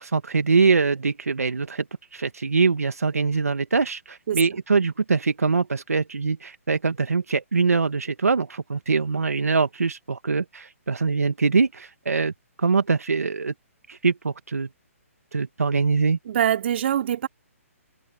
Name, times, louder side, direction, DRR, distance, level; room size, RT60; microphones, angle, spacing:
voice 1, 0.0-1.8 2.1-12.3 12.6-13.5 13.9-14.7 15.3-16.2, right 4 dB, 85° right, 1.5 m, -23 dB
voice 2, 4.3-4.6 16.2-17.3, right 10 dB, 50° right, 4.3 m, -24 dB
hypercardioid pair, 145°, 8 cm